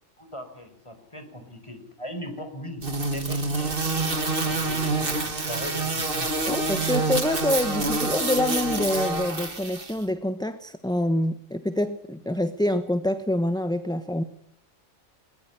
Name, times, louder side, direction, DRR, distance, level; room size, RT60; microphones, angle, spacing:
voice 1, 0.2-3.8 4.4-6.3, left 1 dB, 20° left, 7 dB, 4.7 m, -39 dB
sound 1, 2.8-9.9, right 3 dB, 45° right, 2.4 m, -27 dB
voice 2, 6.5-14.2, left 1 dB, 5° left, 11 dB, 1.0 m, -26 dB
22.0 x 20.0 x 10.0 m, 0.69 s
omnidirectional pair, 1.3 m